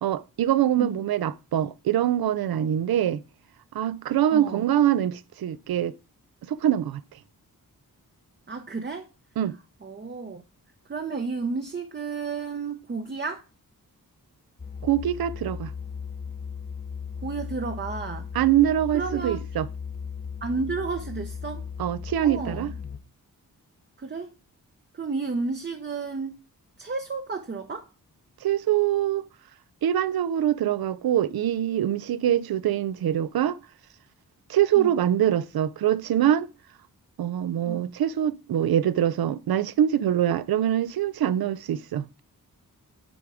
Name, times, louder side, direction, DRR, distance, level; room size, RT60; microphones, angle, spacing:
voice 1, 0.0-3.2 3.7-6.0 6.5-7.0 9.4-9.6 14.8-15.7 18.3-19.7 21.8-22.7 28.4-29.2 29.8-33.6 34.5-36.5 37.2-42.0, right 11 dB, 90° right, 0.5 m, -24 dB
voice 2, 4.3-4.7 8.5-9.1 9.8-10.4 10.9-13.4 17.2-18.3 18.9-19.4 20.4-21.7 22.2-22.7 24.0-24.3 24.9-26.4 26.8-27.9 34.8-34.9 37.6-37.9, right 4 dB, 30° right, 0.6 m, -32 dB
sound 1, 14.6-23.0, left 6 dB, 25° left, 0.7 m, -37 dB
10.0 x 3.5 x 4.8 m
wide cardioid pair, 140°, 36 cm